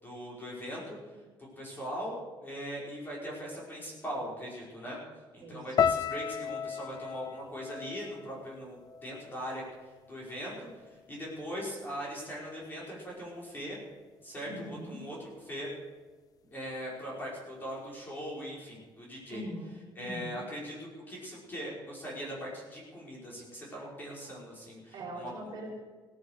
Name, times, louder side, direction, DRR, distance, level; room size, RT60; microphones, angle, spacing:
voice 1, 0.0-1.0 1.4-5.0 5.3-9.6 10.1-10.7 11.1-13.8 14.2-15.2 15.5-15.7 16.5-19.4 20.0-25.3, equal, 20° left, -4 dB, 5.2 m, -40 dB
voice 2, 5.4-6.0 14.4-15.0 19.3-20.4 24.9-25.7, right 1 dB, 45° right, -2 dB, 4.9 m, -42 dB
sound 1, 5.8-10.0 10.2-11.0 11.6-11.8, left 8 dB, 40° left, 0.4 m, -34 dB
17.0 x 11.5 x 6.6 m, 1.4 s
cardioid pair, 165°, 9 cm